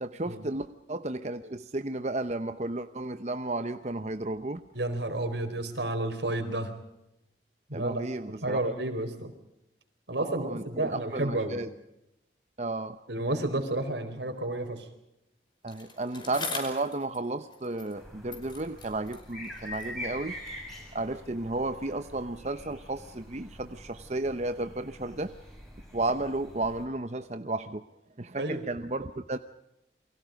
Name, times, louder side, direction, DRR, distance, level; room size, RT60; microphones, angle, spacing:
voice 1, 0.0-4.6 7.7-8.6 10.2-11.7 12.6-13.0 15.6-20.4 20.9-25.3 25.9-27.8 28.2-29.4, right 2 dB, 40° right, 9 dB, 0.9 m, -33 dB
voice 2, 4.7-6.7 7.7-9.3 10.1-11.6 13.1-14.9 28.3-28.6, right 1 dB, 80° right, 7 dB, 4.4 m, -31 dB
Bicycle, 15.7-18.0 18.3-20.7 21.5-21.6, left 4 dB, 25° left, 5.4 m, -42 dB
sound 1, 17.9-26.9, left 1 dB, ahead, 6.5 m, -45 dB
29.0 x 24.0 x 5.2 m, 0.88 s
head